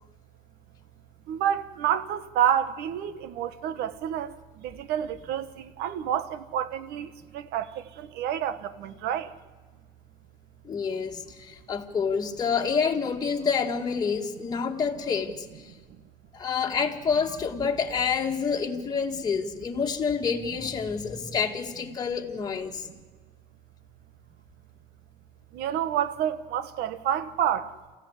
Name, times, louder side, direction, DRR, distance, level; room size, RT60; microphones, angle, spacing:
voice 1, 1.3-9.3 21.3-21.4 25.5-27.7, right 10 dB, 75° right, 1.4 m, -29 dB
voice 2, 10.6-15.7 16.3-22.9, left 6 dB, 25° left, 2.0 m, -28 dB
29.0 x 15.0 x 9.9 m
cardioid pair, 135°, 17 cm